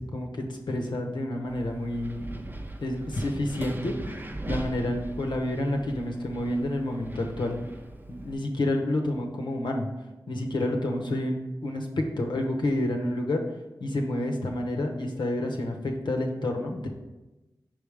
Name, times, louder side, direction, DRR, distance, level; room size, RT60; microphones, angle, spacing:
voice 1, 0.0-2.3 2.8-3.9 4.5-7.6 8.1-9.9 10.3-13.4 13.8-16.9, left 1 dB, 80° left, 3 dB, 0.9 m, -29 dB
Wind, 1.5-8.3, right 1 dB, 25° right, 0.6 m, -39 dB
5.9 x 3.5 x 4.8 m, 1.1 s
wide cardioid pair, 65°, 8 cm